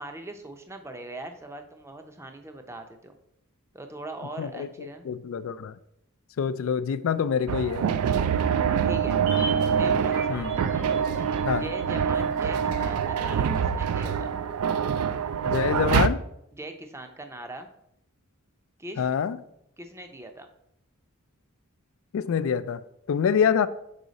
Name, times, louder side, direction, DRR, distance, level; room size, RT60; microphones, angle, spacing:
voice 1, 0.0-3.2 3.7-5.1 8.8-9.2 9.7-10.6 11.5-14.3 16.5-17.7 18.8-19.0 19.8-20.5, right 1 dB, 10° right, 0.5 m, -40 dB
voice 2, 4.4-5.7 6.4-7.9 10.3-10.5 11.4-11.6 15.4-16.2 19.0-19.4 22.1-22.8 23.1-23.7, left 7 dB, 65° left, 0.3 m, -26 dB
sound 1, 7.5-16.1, right 7 dB, 75° right, 0.3 m, -25 dB
sound 2, 8.5-13.0 13.3-13.4, right 2 dB, 55° right, 1.1 m, -40 dB
6.3 x 4.7 x 4.0 m
head